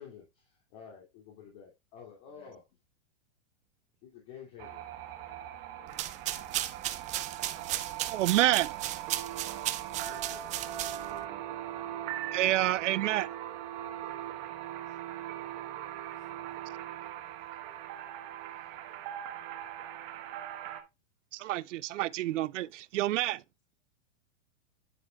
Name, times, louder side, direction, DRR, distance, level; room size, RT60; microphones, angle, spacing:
voice 1, 0.0-2.6 4.0-4.8 9.9-10.5 14.2-14.3 18.5-18.7, left 7 dB, 50° left, 2.7 m, -51 dB
sound 1, 4.6-20.8, right 12 dB, 50° right, 1.4 m, -40 dB
sound 2, 5.9-11.2, right 14 dB, 20° right, 0.4 m, -36 dB
voice 2, 8.1-8.7 12.3-13.3 21.3-23.4, right 15 dB, 80° right, 0.5 m, -28 dB
voice 3, 12.1-12.4 14.2-16.3 16.7-16.8, left 8 dB, 70° left, 1.8 m, -67 dB
9.5 x 6.1 x 2.3 m
hypercardioid pair, 125°, 37 cm